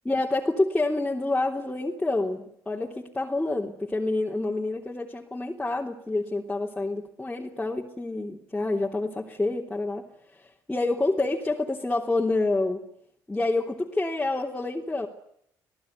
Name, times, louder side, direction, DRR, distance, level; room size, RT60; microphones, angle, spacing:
voice 1, 0.0-10.1 10.4-12.8 13.3-15.1, left 2 dB, 10° left, -2 dB, 3.5 m, -28 dB
26.0 x 18.0 x 9.8 m, 0.71 s
supercardioid pair, 85°, 8 cm